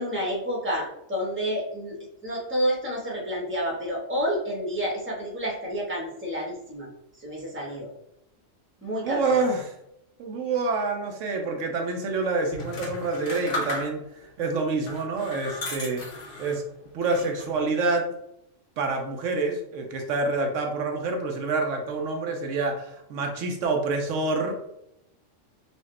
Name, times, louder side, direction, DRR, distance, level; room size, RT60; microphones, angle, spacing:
voice 1, 0.0-2.0 2.2-6.9 7.2-7.9 8.8-9.5, equal, 10° right, -3 dB, 0.9 m, -29 dB
voice 2, 8.9-9.7 10.2-14.0 14.4-16.0 16.4-16.6 16.9-18.1 18.8-24.5, right 3 dB, 75° right, 3 dB, 0.9 m, -27 dB
sound 1, 12.5-14.2 14.8-16.6 17.0-17.6, left 1 dB, 55° left, 1.0 m, -35 dB
4.1 x 2.3 x 3.2 m, 0.81 s
omnidirectional pair, 1.3 m